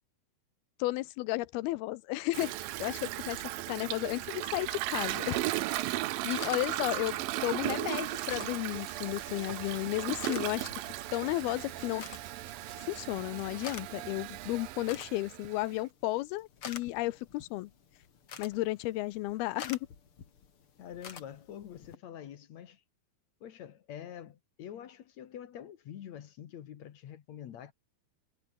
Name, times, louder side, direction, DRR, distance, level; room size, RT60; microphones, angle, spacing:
voice 1, 0.8-2.5 2.8-5.4 6.2-10.7 11.1-12.1 12.8-17.7 18.4-19.8, left 18 dB, 80° left, 2.6 m, -33 dB
Toilet flush, 2.3-15.8, right 16 dB, 75° right, 2.4 m, -36 dB
sound 1, 5.0-22.0, left 7 dB, 40° left, 2.6 m, -50 dB
Frying (food), 7.9-15.9, right 7 dB, 50° right, 1.4 m, -51 dB
voice 2, 20.8-22.8 23.4-27.7, left 10 dB, 60° left, 2.2 m, -46 dB
omnidirectional pair, 4.5 m